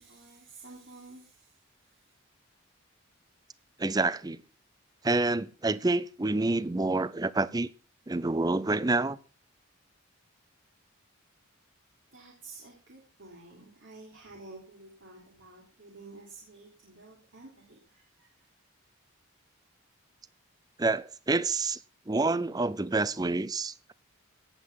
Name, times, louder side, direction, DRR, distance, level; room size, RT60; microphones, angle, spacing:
voice 1, 0.0-1.6 2.0-2.1 12.1-18.3, right 3 dB, 60° right, 3.6 m, -51 dB
voice 2, 3.8-4.4 5.0-7.7 8.1-9.2 20.8-21.8 22.1-23.9, right 2 dB, 20° right, 0.5 m, -28 dB
17.0 x 8.4 x 5.6 m
head